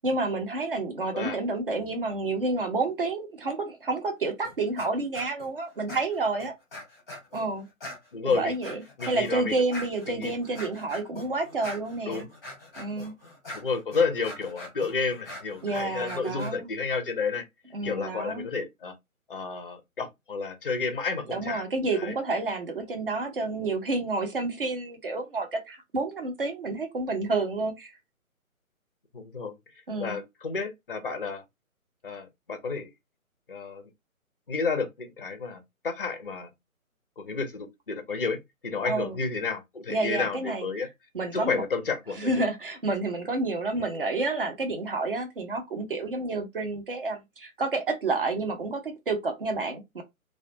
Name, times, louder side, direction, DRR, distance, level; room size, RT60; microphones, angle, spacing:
voice 1, 0.0-6.5 7.3-7.7 8.2-12.3 12.8-13.1 15.6-16.7 17.7-18.5 21.3-27.9 29.9-30.2 38.8-39.2 39.9-40.7 41.1-41.6 42.1-50.0, right 3 dB, 40° right, 0.6 m, -29 dB
sound 1, 4.4-4.9 5.1-5.5 5.9-7.4 7.8-16.5, left 1 dB, 10° left, 0.7 m, -42 dB
voice 2, 8.1-8.5 9.0-9.5 10.1-10.3 12.1-12.3 13.5-17.4 17.8-18.9 19.3-21.6 21.9-22.1 29.1-29.5 30.0-31.4 32.0-32.9 33.5-33.9 34.5-36.5 37.2-38.4 38.6-40.9 41.3-42.3, left 4 dB, 40° left, 0.4 m, -31 dB
2.2 x 2.1 x 2.6 m
figure-of-eight pair, 145°, 43 cm